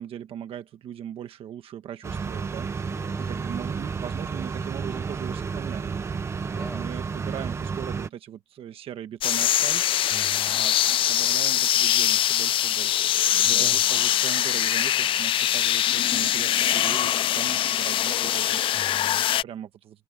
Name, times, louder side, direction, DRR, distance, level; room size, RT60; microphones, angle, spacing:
voice 1, 0.0-2.7 3.3-5.9 6.5-9.8 10.5-18.6 19.3-20.0, right 10 dB, 65° right, 1.4 m, -39 dB
sound 1, 2.0-8.1, right 5 dB, 25° right, 1.0 m, -31 dB
voice 2, 2.9-3.5 6.5-6.9 10.1-10.7 13.4-13.8 18.7-19.3, left 1 dB, 5° left, 7.1 m, -43 dB
sound 2, 9.2-19.4, left 11 dB, 60° left, 0.4 m, -23 dB
cardioid pair, 165°, 10 cm